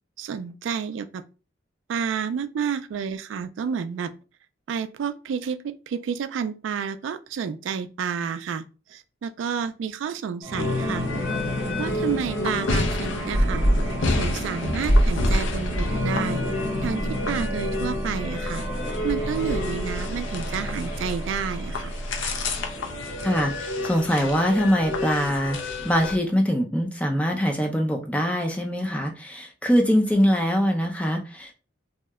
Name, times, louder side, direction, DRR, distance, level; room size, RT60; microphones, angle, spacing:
voice 1, 0.2-1.2 1.9-4.1 4.7-8.6 8.9-11.1 11.8-13.6 14.2-16.4 16.8-18.6 19.0-21.9, right 7 dB, 80° right, 0.3 m, -30 dB
sound 1, 10.4-23.7, left 1 dB, 20° right, 1.0 m, -33 dB
sound 2, 10.6-26.2, left 1 dB, 85° left, 0.6 m, -27 dB
voice 2, 23.2-25.6 25.8-31.5, equal, 5° left, 0.5 m, -23 dB
2.8 x 2.1 x 3.4 m
head